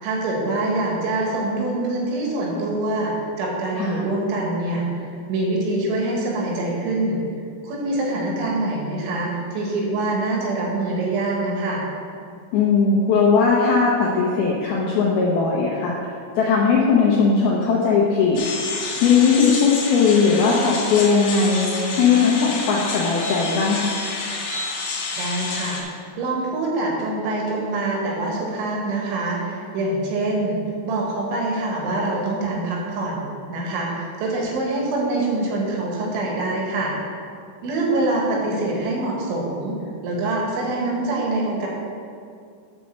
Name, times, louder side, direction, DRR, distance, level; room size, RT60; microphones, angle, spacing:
voice 1, 0.0-7.2 7.6-11.8 25.2-30.6 30.9-37.0 37.6-39.8 40.0-41.7, right 2 dB, 80° right, -2 dB, 3.8 m, -25 dB
voice 2, 12.5-16.0 16.4-18.4 18.7-23.9, left 5 dB, 90° left, -4 dB, 2.2 m, -19 dB
sound 1, 18.3-25.8, left 3 dB, 60° left, 1.9 m, -29 dB
9.0 x 5.2 x 6.6 m, 2.4 s
omnidirectional pair, 5.5 m